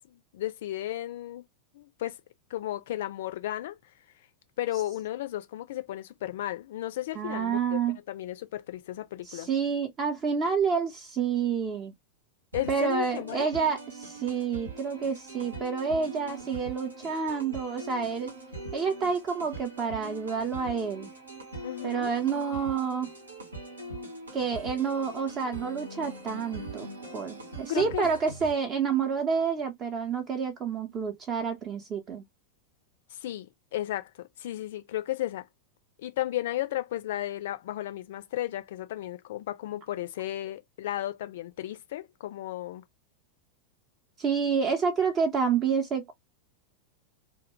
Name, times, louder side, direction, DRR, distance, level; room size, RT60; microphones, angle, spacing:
voice 1, 0.0-1.4 1.7-2.2 2.5-3.8 4.6-9.5 12.5-13.5 21.6-22.1 27.7-28.1 33.1-35.4 36.0-42.8, left 14 dB, 55° left, 0.4 m, -34 dB
voice 2, 7.2-8.0 9.3-11.9 12.7-18.3 18.7-21.1 21.8-23.1 24.3-26.9 27.1-32.2 44.2-46.1, right 6 dB, 30° right, 0.5 m, -29 dB
sound 1, 12.5-28.5, right 2 dB, 80° right, 0.8 m, -42 dB
2.3 x 2.1 x 2.9 m
figure-of-eight pair, 90°, 0 cm